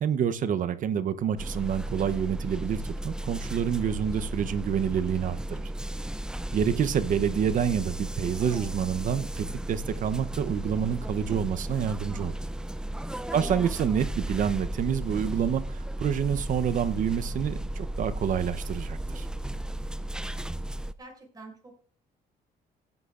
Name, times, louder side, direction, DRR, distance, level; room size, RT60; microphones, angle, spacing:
voice 1, 0.0-5.7 6.5-12.3 13.3-19.3, right 8 dB, 50° right, 12 dB, 0.8 m, -28 dB
sound 1, 1.4-20.9, right 1 dB, 5° right, 0.5 m, -34 dB
voice 2, 21.0-21.8, right 3 dB, 25° right, 2 dB, 6.1 m, -48 dB
17.0 x 9.5 x 2.5 m, 0.41 s
cardioid pair, 110°, 17 cm